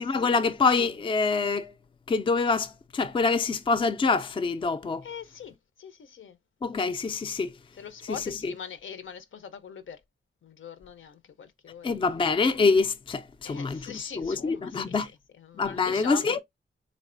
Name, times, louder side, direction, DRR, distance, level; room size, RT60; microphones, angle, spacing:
voice 1, 0.0-1.7 2.1-5.0 6.6-7.6 8.4-8.5 11.8-15.1 15.5-16.4, left 4 dB, 25° left, 0.4 m, -25 dB
voice 2, 5.0-6.4 7.8-10.0 10.4-11.9 13.4-15.1 15.4-16.4, left 7 dB, 80° left, 0.6 m, -42 dB
3.6 x 3.2 x 2.5 m
wide cardioid pair, 120°, 20 cm